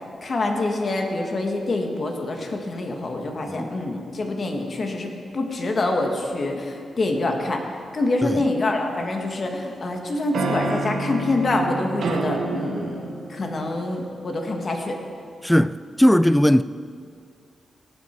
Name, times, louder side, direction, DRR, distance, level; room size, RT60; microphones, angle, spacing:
voice 1, 0.2-7.6 7.9-15.0, left 2 dB, 50° left, 1.7 m, -26 dB
sound 1, 8.8-9.7 10.3-14.0, right 3 dB, 80° right, 1.4 m, -29 dB
voice 2, 15.4-16.6, equal, 5° left, 0.3 m, -18 dB
17.5 x 8.3 x 4.6 m
cardioid pair, 70°, 0 cm